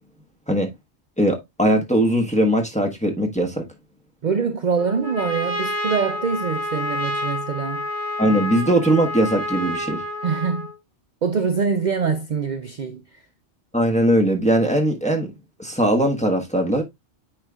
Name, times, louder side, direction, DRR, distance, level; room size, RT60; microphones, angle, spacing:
voice 1, 1.2-3.7 8.2-10.0 13.7-15.3 15.6-16.8, right 1 dB, 5° left, 1.2 m, -20 dB
voice 2, 4.2-7.9 10.2-10.7 11.2-13.2, right 5 dB, 45° right, 0.7 m, -24 dB
Trumpet, 4.8-10.8, left 1 dB, 60° left, 2.6 m, -28 dB
8.9 x 4.5 x 2.4 m
omnidirectional pair, 1.2 m